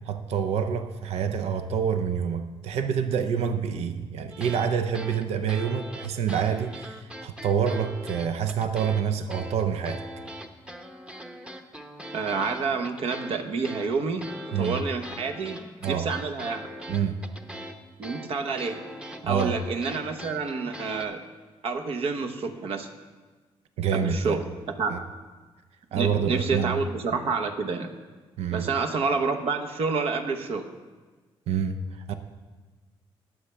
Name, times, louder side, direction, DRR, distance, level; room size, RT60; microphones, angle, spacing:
voice 1, 0.1-10.1 14.5-14.8 15.8-16.1 16.9-17.2 19.2-19.6 23.8-24.4 24.9-25.0 25.9-26.8 28.4-28.7 31.5-32.1, right 7 dB, 85° right, 0.6 m, -27 dB
sound 1, 4.3-4.7 4.9-9.0 9.3-21.1, equal, 10° right, 0.8 m, -41 dB
voice 2, 12.1-16.7 18.0-18.8 19.2-21.2 21.6-22.9 23.9-24.5 24.8-25.0 25.9-28.0 28.5-30.7, right 4 dB, 70° right, 1.1 m, -28 dB
19.0 x 7.4 x 3.4 m
cardioid pair, 90°, 10 cm